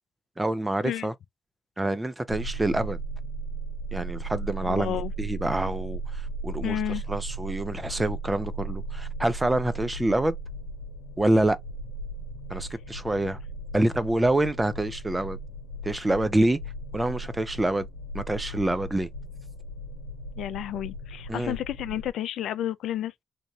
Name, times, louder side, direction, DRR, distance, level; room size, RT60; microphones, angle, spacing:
voice 1, 0.4-1.1 1.8-3.0 3.9-6.8 7.1-10.4 11.2-11.6 12.5-13.4 13.7-15.4 15.8-16.6 16.9-17.9 18.1-19.1 21.3-21.6, right 1 dB, 20° right, 0.7 m, -26 dB
sound 1, 2.3-22.1, right 2 dB, 90° left, 0.9 m, -36 dB
voice 2, 4.7-5.1 6.6-7.0 20.4-23.2, left 12 dB, 70° left, 0.3 m, -31 dB
3.4 x 2.5 x 2.6 m
hypercardioid pair, 45°, 0 cm